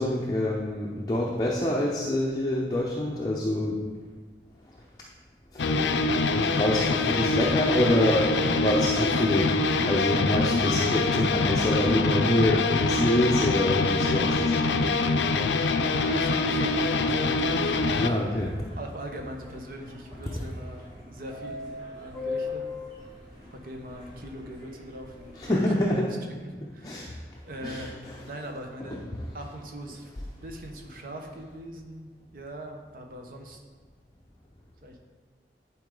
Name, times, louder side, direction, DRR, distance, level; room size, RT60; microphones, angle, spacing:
voice 1, 0.0-3.8 5.5-9.5 9.8-15.0 18.0-18.6 25.4-26.1 26.8-27.1 27.6-27.9 28.9-29.0, left 1 dB, 20° left, -3 dB, 0.6 m, -26 dB
sound 1, 5.6-18.1, left 3 dB, 90° left, 0.5 m, -24 dB
sound 2, 12.1-25.7, left 3 dB, 25° right, 2.1 m, -43 dB
voice 2, 15.9-18.3 18.8-21.6 22.0-22.7 23.5-29.0 29.3-30.1 30.4-33.6 34.8-35.0, right 1 dB, 50° right, 3 dB, 1.0 m, -41 dB
10.5 x 4.7 x 3.8 m, 1.4 s
head